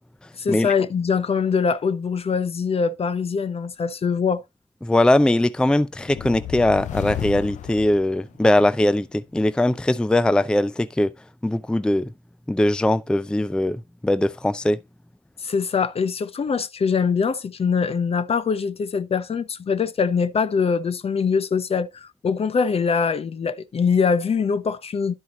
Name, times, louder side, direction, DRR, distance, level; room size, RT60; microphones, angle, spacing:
voice 1, 0.4-4.4 15.4-25.1, left 5 dB, 45° left, 0.8 m, -23 dB
voice 2, 4.8-11.1 11.4-12.1 12.5-14.8, left 1 dB, 5° left, 0.4 m, -20 dB
sound 1, 6.0-8.7, left 12 dB, 65° left, 0.4 m, -33 dB
11.0 x 4.6 x 4.0 m
supercardioid pair, 60°, 13 cm